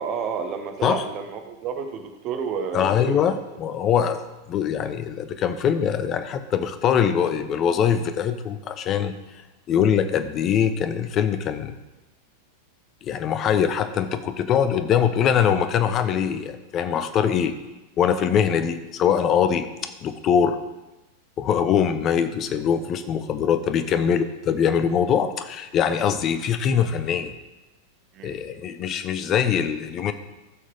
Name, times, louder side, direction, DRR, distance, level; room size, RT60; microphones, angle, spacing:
voice 1, 0.0-3.2 23.9-24.0 28.1-28.5, right 6 dB, 35° right, 6 dB, 1.2 m, -31 dB
voice 2, 2.7-9.2 9.7-11.7 13.0-17.5 18.0-20.6 21.4-27.3 28.2-30.1, left 8 dB, 30° left, 10 dB, 0.8 m, -23 dB
15.0 x 6.3 x 3.6 m, 1.0 s
figure-of-eight pair, 90°, 0 cm